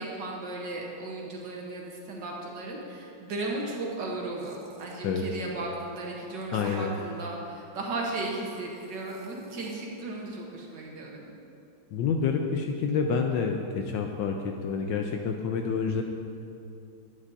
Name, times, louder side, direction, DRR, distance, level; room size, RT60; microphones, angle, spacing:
voice 1, 0.0-11.3, right 2 dB, 60° right, -2 dB, 1.7 m, -35 dB
sound 1, 4.4-5.0 6.0-7.3 8.5-9.7, right 4 dB, 80° right, 0.8 m, -49 dB
voice 2, 6.5-6.9 11.9-16.0, left 5 dB, 75° left, 3 dB, 1.1 m, -28 dB
11.5 x 9.6 x 2.7 m, 2.6 s
omnidirectional pair, 2.4 m